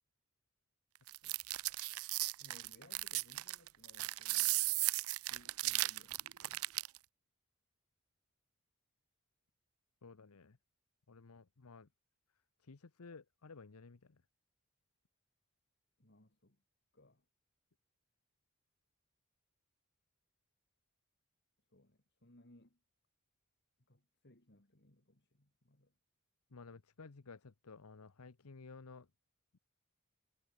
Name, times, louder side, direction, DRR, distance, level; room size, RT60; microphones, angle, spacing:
sound 1, 1.1-7.0, right 19 dB, 80° right, 0.6 m, -36 dB
voice 1, 2.4-4.7 5.2-6.7 16.0-16.6 16.9-17.2 21.7-22.8 23.9-25.9, left 1 dB, 50° left, 2.7 m, -64 dB
voice 2, 10.0-10.6 11.1-11.9 12.6-14.2 26.5-29.1 29.5-29.6, left 4 dB, 85° left, 0.9 m, -55 dB
head